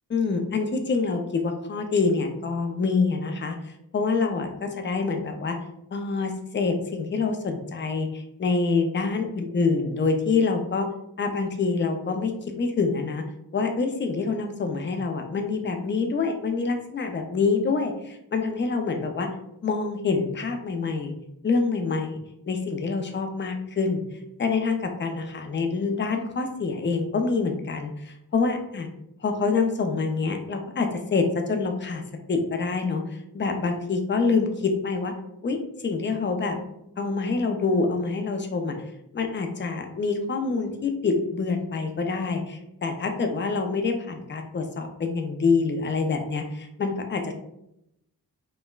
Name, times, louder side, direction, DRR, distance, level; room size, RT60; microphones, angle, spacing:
voice 1, 0.1-3.6 3.9-5.6 5.9-10.9 11.2-13.2 13.5-19.3 19.6-21.1 21.4-22.2 22.5-24.0 24.4-28.9 29.2-32.0 32.3-33.0 33.3-35.1 35.4-35.6 35.8-36.6 37.0-38.7 39.1-47.4, left 4 dB, 30° left, 5 dB, 0.4 m, -26 dB
5.3 x 2.0 x 2.3 m, 0.83 s
wide cardioid pair, 110°, 38 cm